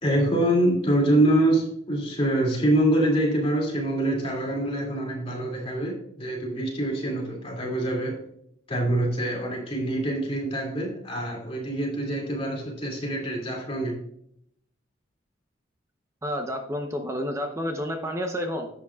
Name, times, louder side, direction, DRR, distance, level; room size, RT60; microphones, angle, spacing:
voice 1, 0.0-8.1 8.7-13.9, right 1 dB, 30° left, 0 dB, 2.6 m, -25 dB
voice 2, 16.2-18.7, equal, 15° right, 4 dB, 0.8 m, -30 dB
11.0 x 8.3 x 2.4 m, 0.70 s
head